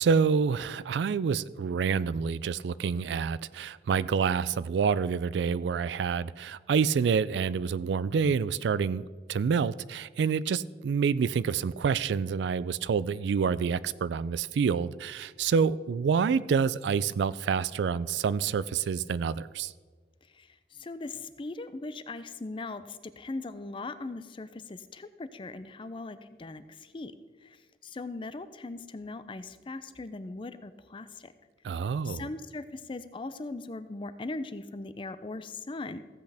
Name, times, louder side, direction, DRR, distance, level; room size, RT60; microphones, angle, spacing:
voice 1, 0.0-19.7 31.6-32.3, right 6 dB, 75° right, 0.3 m, -27 dB
voice 2, 20.3-27.1 27.4-31.3 32.0-36.0, left 3 dB, 30° left, 0.5 m, -39 dB
15.0 x 7.9 x 3.4 m
head